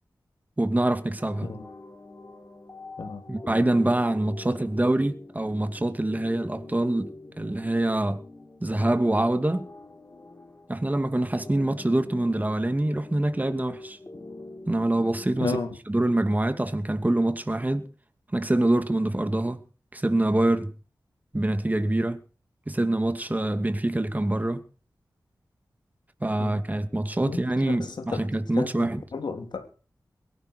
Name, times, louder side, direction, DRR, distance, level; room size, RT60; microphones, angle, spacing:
voice 1, 0.6-1.5 3.3-8.2 8.6-9.7 10.7-14.0 14.7-15.6 15.9-17.9 18.3-19.6 19.9-20.7 21.3-22.2 22.7-24.6 26.2-29.0, right 1 dB, 20° right, 2.5 m, -25 dB
sound 1, 1.2-15.4, left 2 dB, 30° left, 3.9 m, -44 dB
voice 2, 15.4-15.8 26.4-26.6 27.3-28.3 28.6-29.7, left 4 dB, 85° left, 3.3 m, -33 dB
23.0 x 11.0 x 4.7 m
wide cardioid pair, 80°, 7 cm